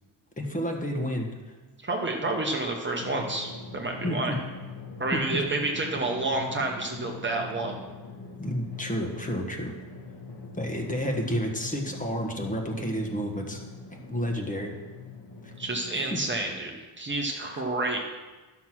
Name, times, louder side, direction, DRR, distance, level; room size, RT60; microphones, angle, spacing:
voice 1, 0.4-1.3 4.0-4.4 5.1-5.4 8.4-9.7 10.6-13.6 14.1-14.7 15.4-15.5 16.1-16.2 17.3-17.6, equal, 20° left, 2 dB, 1.3 m, -30 dB
voice 2, 1.8-4.4 5.0-7.8 15.6-18.0, right 2 dB, 25° right, 1 dB, 1.0 m, -29 dB
Drum, 3.0-16.0, left 4 dB, 55° left, 1.7 m, -42 dB
11.5 x 6.0 x 6.1 m, 1.3 s
cardioid pair, 145°, 44 cm